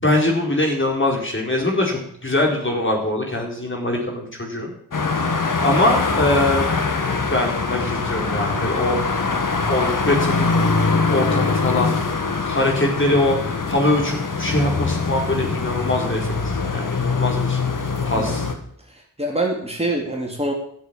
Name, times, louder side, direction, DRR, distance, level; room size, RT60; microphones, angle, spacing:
voice 1, 0.0-4.7 5.6-7.0 7.3-9.0 9.7-10.6 11.1-12.0 12.3-17.6 18.0-18.4, left 1 dB, 35° left, 0 dB, 4.3 m, -22 dB
sound 1, 4.9-18.5, left 4 dB, 65° left, 1.9 m, -23 dB
voice 2, 18.0-18.3 18.9-20.5, right 1 dB, 15° right, -1 dB, 3.4 m, -25 dB
13.0 x 7.5 x 8.9 m, 0.66 s
cardioid pair, 60°, 35 cm